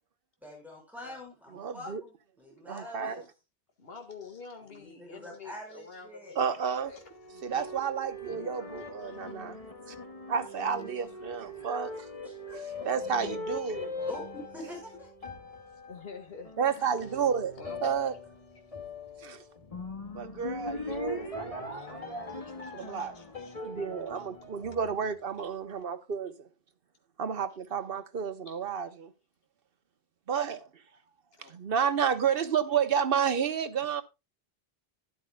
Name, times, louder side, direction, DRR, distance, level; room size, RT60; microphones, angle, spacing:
voice 1, 0.4-3.2 4.6-6.4 11.6-11.9 12.2-12.7 14.1-15.1, left 1 dB, ahead, 5.3 m, -45 dB
voice 2, 1.5-2.0 2.7-3.1 6.4-6.9 7.4-9.6 9.9-10.0 10.3-12.1 12.8-13.9 16.6-18.1 19.2-19.4 20.1-23.2 23.6-26.5 27.2-29.1 30.3-30.7 31.5-34.0, right 7 dB, 65° right, 1.2 m, -31 dB
voice 3, 3.8-7.0 7.3-7.7 8.2-9.3 11.2-11.4 13.6-14.1 14.6-14.7 15.9-16.9 17.6-17.9 21.7-21.9 22.3-23.6 24.1-24.3 28.5-28.6 31.3-31.6, left 4 dB, 70° left, 1.9 m, -48 dB
sound 1, 6.8-25.4, left 2 dB, 35° left, 1.5 m, -41 dB
12.5 x 11.0 x 2.2 m
omnidirectional pair, 1.0 m